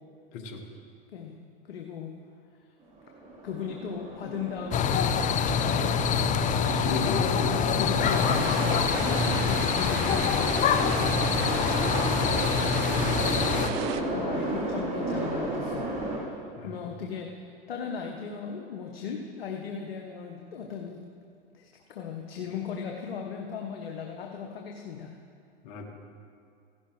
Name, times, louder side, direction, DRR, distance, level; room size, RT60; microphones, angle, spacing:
voice 1, 1.7-2.1 3.4-5.3 5.6-6.2 7.4-11.3 13.8-21.0 21.5-25.1, left 6 dB, 80° left, 2 dB, 1.0 m, -37 dB
sound 1, 2.9-16.2, right 2 dB, 25° right, 3.4 m, -34 dB
sound 2, 4.7-13.7, left 6 dB, 25° left, 0.6 m, -25 dB
voice 2, 6.8-7.7 11.9-12.3 16.6-16.7 25.6-25.9, left 4 dB, 55° left, 3 dB, 1.7 m, -35 dB
sound 3, 8.0-14.0, right 10 dB, 45° right, 0.7 m, -36 dB
15.5 x 11.5 x 3.2 m, 2.4 s
hypercardioid pair, 95°, 29 cm